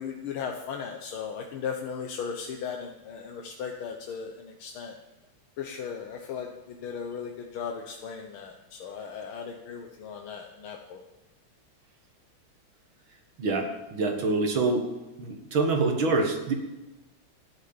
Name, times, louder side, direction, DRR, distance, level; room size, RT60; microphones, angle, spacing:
voice 1, 0.0-4.9 5.6-11.0, left 6 dB, 85° left, 2 dB, 1.9 m, -37 dB
voice 2, 13.4-14.9 15.2-16.5, right 3 dB, 75° right, 3 dB, 2.5 m, -26 dB
13.5 x 10.0 x 7.1 m, 1.0 s
omnidirectional pair, 2.2 m